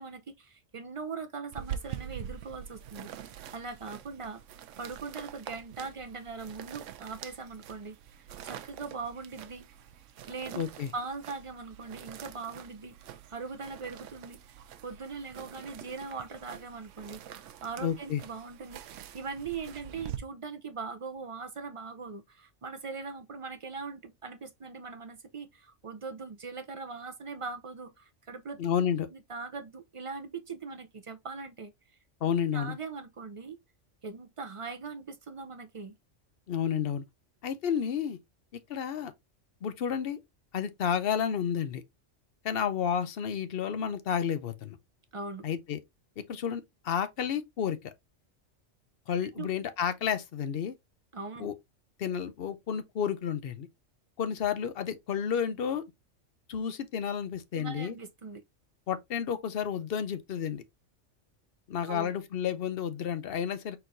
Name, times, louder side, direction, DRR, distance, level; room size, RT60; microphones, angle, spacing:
voice 1, 0.0-4.4 4.8-8.0 8.4-9.6 10.3-10.6 10.9-14.4 14.8-28.6 29.1-31.7 32.5-33.6 34.0-35.9 45.1-45.5 49.2-49.5 51.1-51.5 57.5-58.4 61.9-62.1, right 4 dB, 45° right, 0.4 m, -41 dB
sound 1, 1.5-20.2, right 10 dB, 80° right, 0.9 m, -45 dB
voice 2, 10.6-10.9 17.8-18.2 28.6-29.1 32.2-32.8 36.5-37.0 37.4-38.2 38.7-39.1 39.6-40.2 40.5-41.8 42.4-44.8 45.4-45.8 46.3-47.9 49.1-50.8 51.4-51.5 52.0-53.7 54.2-55.8 56.5-58.0 58.9-60.6 61.7-63.8, left 8 dB, 55° left, 0.8 m, -31 dB
4.4 x 4.0 x 2.5 m
omnidirectional pair, 1.3 m